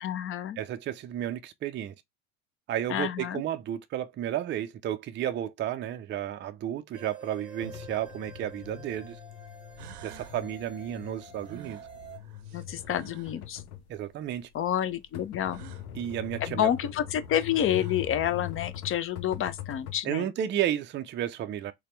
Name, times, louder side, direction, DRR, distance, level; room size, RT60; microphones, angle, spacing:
voice 1, 0.0-0.6 2.9-3.4 12.5-13.6 14.5-15.6 16.4-20.3, left 10 dB, 30° left, 0.5 m, -29 dB
voice 2, 0.6-1.9 2.7-9.2 10.0-11.8 13.9-14.5 15.9-16.7 20.0-21.7, right 11 dB, 25° right, 0.4 m, -32 dB
sound 1, 6.9-12.2, right 3 dB, 10° right, 1.1 m, -49 dB
sound 2, 7.6-20.0, left 11 dB, 75° left, 0.8 m, -42 dB
sound 3, 9.3-9.4 9.8-10.4 11.5-13.4 15.5-15.9 17.1-17.2 17.5-18.1, right 11 dB, 85° right, 0.7 m, -50 dB
4.1 x 2.2 x 3.1 m
hypercardioid pair, 70°, 45 cm